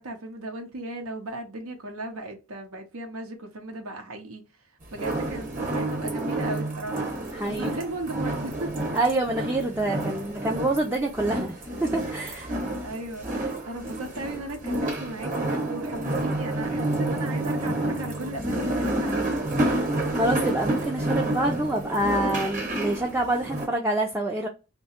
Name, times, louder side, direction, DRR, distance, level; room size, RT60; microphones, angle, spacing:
voice 1, 0.0-4.4 4.9-7.1 7.5-9.0 9.3-9.4 12.4-19.7, right 2 dB, 80° right, 0.8 m, -36 dB
sound 1, 4.9-23.7, right 1 dB, 35° right, 1.0 m, -29 dB
voice 2, 7.3-7.7 8.9-12.5 20.1-24.5, right 1 dB, 10° right, 0.3 m, -27 dB
2.8 x 2.2 x 4.1 m
head